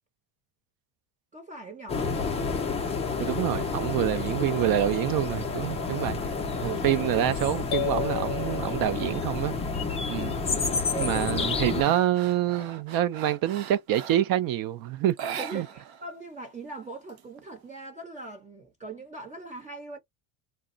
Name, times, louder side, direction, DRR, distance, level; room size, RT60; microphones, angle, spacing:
voice 1, 1.3-2.0 6.6-7.0 10.2-10.4 10.9-11.3 15.4-20.0, right 3 dB, 15° right, 0.8 m, -40 dB
sound 1, 1.9-11.8, left 4 dB, 15° left, 0.4 m, -30 dB
voice 2, 3.2-6.2 6.6-9.6 10.1-10.4 11.0-15.2 15.5-15.7, right 12 dB, 50° right, 0.5 m, -26 dB
sound 2, 7.7-9.6, left 16 dB, 75° left, 0.6 m, -33 dB
sound 3, 10.1-10.5 10.9-14.4 15.1-16.1 16.3-16.4 16.8-17.7, right 8 dB, 70° right, 0.8 m, -40 dB
2.3 x 2.1 x 3.8 m
cardioid pair, 150°, 48 cm